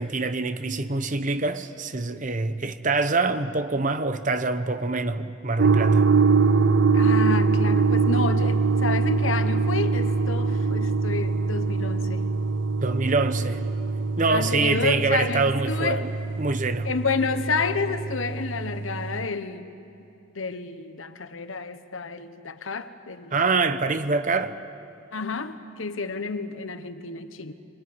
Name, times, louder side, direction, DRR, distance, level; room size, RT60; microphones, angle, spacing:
voice 1, 0.0-6.1 12.8-13.6 14.2-16.1 16.4-16.9 23.3-24.6, right 3 dB, 40° right, 1.0 m, -25 dB
sound 1, 5.6-19.3, right 4 dB, 65° right, 0.6 m, -23 dB
voice 2, 6.9-12.3 14.3-16.1 16.8-19.8 20.3-23.3 25.1-27.5, left 4 dB, 90° left, 1.3 m, -30 dB
25.0 x 21.0 x 9.7 m
head